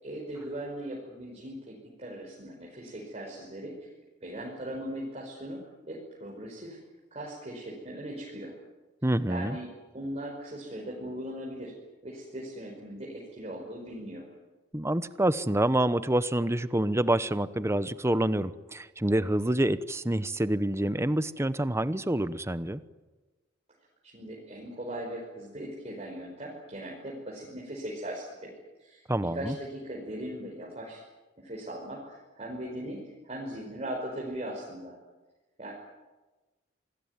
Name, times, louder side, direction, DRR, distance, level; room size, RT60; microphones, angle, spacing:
voice 1, 0.0-3.9 4.2-6.8 7.1-8.5 9.3-11.7 12.0-14.2 24.0-28.5 28.8-29.0 29.3-31.0 31.4-35.0 35.6-35.7, right 1 dB, 35° right, -2 dB, 5.4 m, -39 dB
voice 2, 9.0-9.6 14.7-22.8 29.1-29.5, right 1 dB, 15° right, 14 dB, 0.9 m, -27 dB
27.5 x 20.0 x 9.7 m, 1.2 s
head